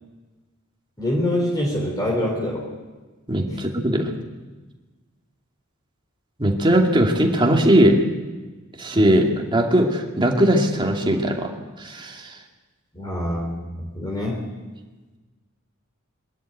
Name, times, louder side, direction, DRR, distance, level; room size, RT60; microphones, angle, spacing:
voice 1, 1.0-2.7 3.5-3.6 12.9-13.6 13.9-14.4, left 1 dB, 20° left, -2 dB, 3.7 m, -25 dB
voice 2, 3.3-4.0 6.4-8.0 8.8-11.5 11.8-12.3, right 1 dB, 25° right, 1 dB, 2.4 m, -19 dB
22.5 x 13.0 x 9.1 m, 1.3 s
head